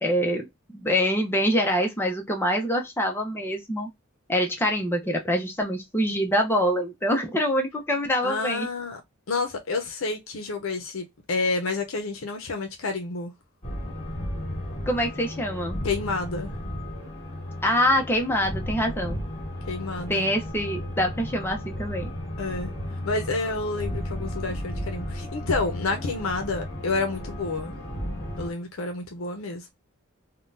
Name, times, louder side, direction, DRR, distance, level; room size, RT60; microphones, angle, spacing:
voice 1, 0.0-3.9 4.3-8.7 14.9-15.8 17.6-19.2 20.1-22.1, equal, 10° left, 0.7 m, -25 dB
voice 2, 8.2-9.0 9.3-13.3 15.8-16.5 19.7-20.3 22.4-22.7 23.0-27.7 28.4-29.7, left 3 dB, 75° left, 0.7 m, -29 dB
sound 1, 13.6-28.5, left 1 dB, 35° left, 1.4 m, -34 dB
3.6 x 2.2 x 2.6 m
head